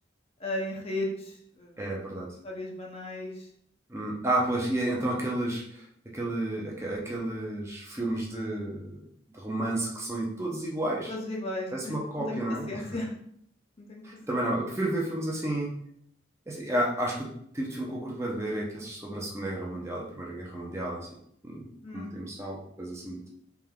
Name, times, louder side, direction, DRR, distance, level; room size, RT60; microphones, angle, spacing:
voice 1, 0.4-1.8 2.4-3.5 11.1-12.4 12.7-13.1 13.8-14.0 21.8-22.1, left 1 dB, 30° left, -1 dB, 0.7 m, -35 dB
voice 2, 1.8-2.3 3.9-5.8 6.1-9.0 9.3-11.1 11.7-12.8 14.0-15.7 16.5-21.1 21.4-23.2, right 1 dB, 15° right, -3 dB, 0.7 m, -31 dB
3.5 x 3.4 x 3.6 m, 0.68 s
head